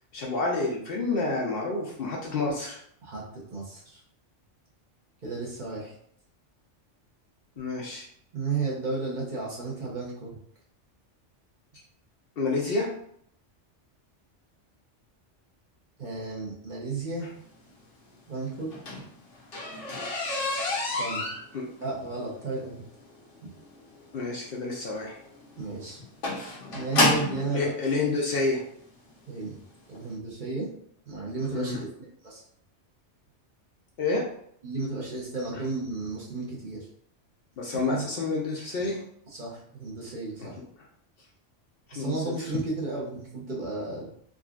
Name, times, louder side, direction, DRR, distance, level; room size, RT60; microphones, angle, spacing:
voice 1, 0.1-2.8 7.6-8.0 12.4-12.9 21.5-21.6 24.1-25.2 27.5-28.6 31.5-31.8 34.0-34.2 37.6-39.0 40.4-40.5 41.9-42.1, left 3 dB, 60° left, -2 dB, 0.7 m, -28 dB
voice 2, 3.0-4.0 5.2-5.9 8.3-10.3 16.0-17.3 18.3-18.7 21.0-21.2 21.8-22.8 25.6-26.0 26.7-27.7 29.3-29.6 29.9-30.7 31.1-31.9 32.2-32.4 34.6-36.8 37.9-38.0 39.3-40.6 41.9-44.1, right 3 dB, 45° right, -5 dB, 0.8 m, -33 dB
sound 1, 18.6-27.5 28.4-28.5 29.0-29.2 29.5-29.6 29.9-30.0, left 2 dB, 80° left, 1.3 m, -29 dB
3.7 x 2.3 x 2.4 m, 0.66 s
omnidirectional pair, 1.2 m